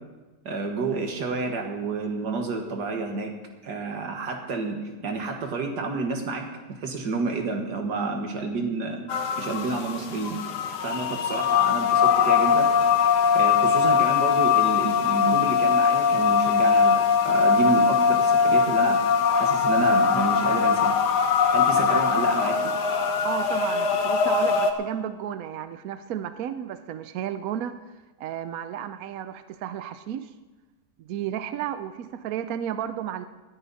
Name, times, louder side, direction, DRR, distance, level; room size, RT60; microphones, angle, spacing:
voice 1, 0.4-3.3 3.6-9.0 9.4-10.4 10.8-12.7 13.3-19.0 19.3-20.9 21.5-22.7, right 3 dB, 85° right, 3 dB, 2.1 m, -30 dB
sound 1, 9.1-24.7, left 6 dB, 90° left, 1.5 m, -21 dB
voice 2, 23.2-27.8 28.2-30.3 31.0-33.2, right 10 dB, 70° right, 11 dB, 1.0 m, -33 dB
19.5 x 9.9 x 4.1 m, 1.2 s
omnidirectional pair, 1.7 m